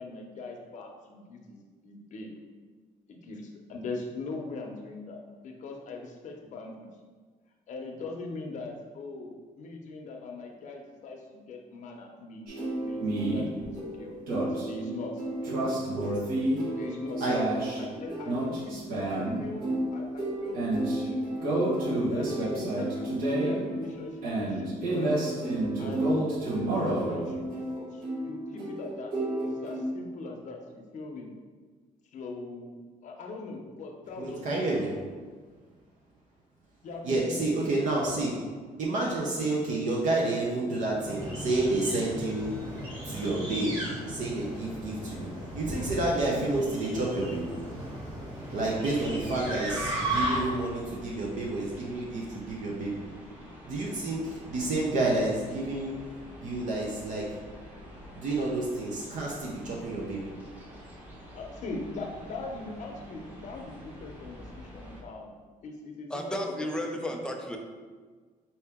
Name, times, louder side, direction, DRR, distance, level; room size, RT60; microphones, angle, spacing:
voice 1, 0.0-2.3 3.1-6.9 7.7-12.5 12.8-14.1 14.4-15.2 16.7-21.5 21.9-26.1 26.8-29.1 29.4-31.3 32.1-34.8 36.8-38.0 46.3-46.5 61.3-65.3 65.6-67.0, left 3 dB, 55° left, 1 dB, 0.7 m, -41 dB
sound 1, 12.5-29.8, right 1 dB, 75° right, 1.2 m, -30 dB
voice 2, 15.5-16.2 17.2-17.4 34.2-35.0 37.0-38.3 38.8-42.6 43.0-47.6 48.5-53.0 53.6-56.0 56.4-57.4 58.2-60.3, right 2 dB, 55° right, -3 dB, 0.6 m, -30 dB
sound 2, 40.9-50.7, right 1 dB, 35° right, 1.5 m, -35 dB
sound 3, 48.3-65.0, equal, 10° right, 0.9 m, -48 dB
voice 3, 66.1-67.6, equal, 5° left, 2 dB, 0.4 m, -33 dB
4.4 x 2.8 x 3.5 m, 1.5 s
cardioid pair, 145°, 15 cm